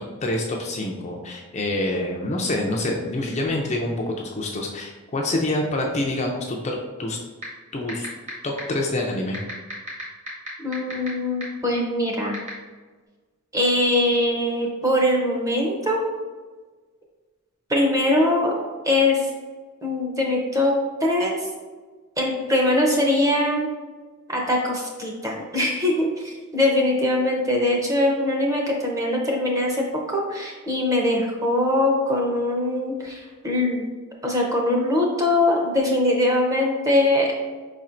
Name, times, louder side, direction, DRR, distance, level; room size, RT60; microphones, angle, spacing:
voice 1, 0.2-7.2 7.7-8.1 8.4-9.4, left 1 dB, 30° left, 0 dB, 0.4 m, -26 dB
sound 1, 7.4-7.5 7.9-8.3 8.6-8.7 9.3-11.1 11.4-11.5 12.3-12.5, equal, 30° right, 1.1 m, -31 dB
voice 2, 10.6-12.4 13.5-16.0 17.7-18.5 18.8-19.3 19.8-20.7 21.0-21.5 22.2-23.7 24.3-33.8 34.2-37.3, left 1 dB, 15° right, -1 dB, 0.7 m, -22 dB
4.9 x 4.2 x 2.5 m, 1.4 s
head